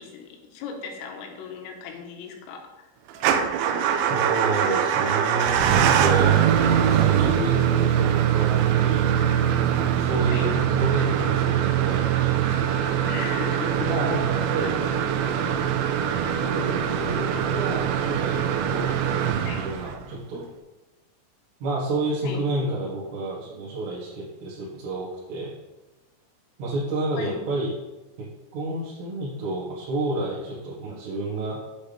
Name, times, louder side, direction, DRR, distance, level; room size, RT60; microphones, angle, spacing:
voice 1, 0.0-2.9 10.3-10.6 13.0-14.1 14.6-14.7 19.5-19.8 22.2-22.5 27.2-27.5, left 6 dB, 85° left, 3 dB, 3.7 m, -36 dB
Motor vehicle (road) / Engine starting / Idling, 3.2-20.1, right 9 dB, 85° right, 2.6 m, -22 dB
voice 2, 4.1-6.4 6.8-9.1 9.7-12.5 12.8-12.9 13.9-14.8 15.1-15.6 16.4-18.4 18.7-20.5 21.6-25.5 26.6-27.7 28.2-31.6, right 2 dB, 65° right, -9 dB, 3.5 m, -30 dB
8.6 x 8.2 x 3.5 m, 1.1 s
omnidirectional pair, 5.8 m